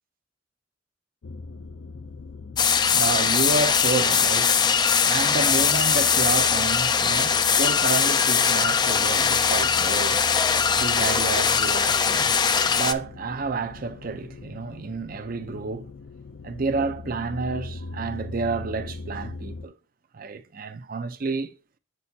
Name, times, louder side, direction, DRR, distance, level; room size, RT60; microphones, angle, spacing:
sound 1, 1.2-19.7, left 3 dB, 75° left, 0.5 m, -41 dB
sound 2, 2.6-12.9, left 6 dB, 20° left, 0.3 m, -21 dB
voice 1, 2.8-15.9 16.4-19.8 20.1-21.5, right 4 dB, 45° right, 0.5 m, -30 dB
7.4 x 6.2 x 2.7 m
head